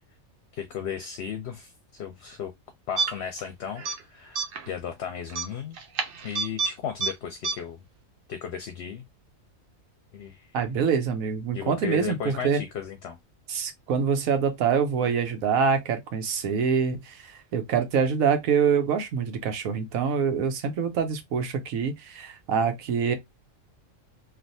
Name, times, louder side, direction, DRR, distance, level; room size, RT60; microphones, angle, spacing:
voice 1, 0.6-2.5 2.9-5.8 6.2-7.8 8.3-9.0 10.1-10.5 11.5-13.2, left 8 dB, 65° left, 0.8 m, -35 dB
sound 1, 3.0-3.5 3.8-4.0 4.4-4.7 5.3-6.7 7.0-7.1 7.4-7.5, right 5 dB, 55° right, 0.6 m, -28 dB
voice 2, 10.5-12.6 13.5-23.2, right 6 dB, 85° right, 1.2 m, -25 dB
3.2 x 2.5 x 2.7 m
omnidirectional pair, 1.4 m